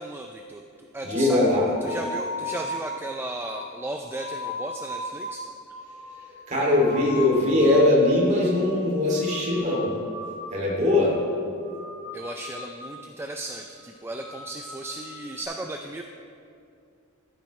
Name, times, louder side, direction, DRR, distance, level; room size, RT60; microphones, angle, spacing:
voice 1, 0.0-1.4 1.8-5.4 12.1-16.0, right 2 dB, 10° right, 3 dB, 0.3 m, -35 dB
voice 2, 1.0-1.7 6.5-9.9 10.5-11.1, left 1 dB, 35° right, -4 dB, 2.6 m, -21 dB
sound 1, 1.1-8.0 8.3-8.8 9.1-10.6 10.8-11.3 11.6-13.0 13.4-13.7 14.1-15.4, left 2 dB, 80° left, 2.6 m, -38 dB
15.0 x 9.1 x 3.2 m, 2.5 s
head